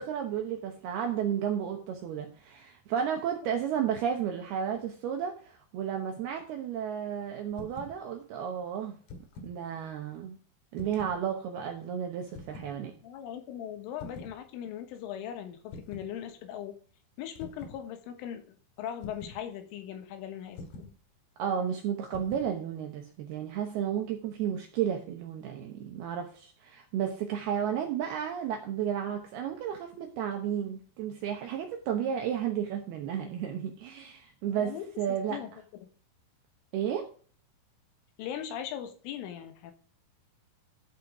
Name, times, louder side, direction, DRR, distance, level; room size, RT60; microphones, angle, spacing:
voice 1, 0.0-9.0 9.4-10.4 10.7-12.9 21.4-35.4 36.7-37.1, right 9 dB, 75° right, 2.4 m, -33 dB
sound 1, 7.5-8.0 8.9-9.6 10.7-11.2 12.3-12.7 14.0-14.4 15.7-16.1 17.4-17.8 19.0-19.4 20.6-21.0 22.1-22.5, left 2 dB, 60° left, 3.1 m, -45 dB
voice 2, 13.0-16.8 17.2-20.9 23.8-23.9 34.5-34.9 35.3-35.5 38.2-39.7, left 10 dB, 80° left, 3.7 m, -39 dB
13.5 x 5.7 x 4.8 m
omnidirectional pair, 5.8 m